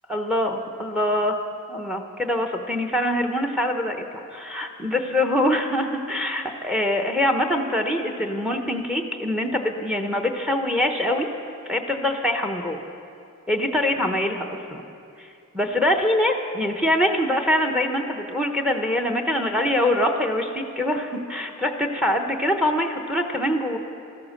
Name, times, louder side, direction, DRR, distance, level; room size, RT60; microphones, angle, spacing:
voice 1, 0.1-1.4 1.7-4.0 4.3-11.3 11.7-12.8 13.5-14.8 15.5-23.8, left 1 dB, 5° right, 4 dB, 0.8 m, -24 dB
14.0 x 14.0 x 6.5 m, 2.5 s
head